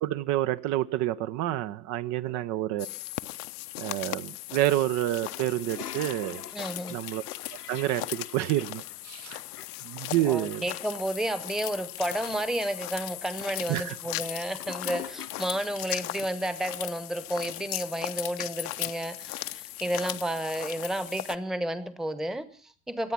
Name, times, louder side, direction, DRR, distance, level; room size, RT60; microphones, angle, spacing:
voice 1, 0.0-2.9 3.8-6.4 6.9-7.2 7.7-9.4 9.8-10.6 13.7-14.0, right 14 dB, 40° right, 0.7 m, -28 dB
sound 1, 2.8-21.3, left 18 dB, 45° left, 0.9 m, -38 dB
Toilet flush, 5.1-15.8, left 9 dB, 80° left, 1.0 m, -46 dB
voice 2, 6.5-7.0 10.2-23.1, right 1 dB, ahead, 1.1 m, -32 dB
25.5 x 9.1 x 5.9 m
figure-of-eight pair, 75°, 46 cm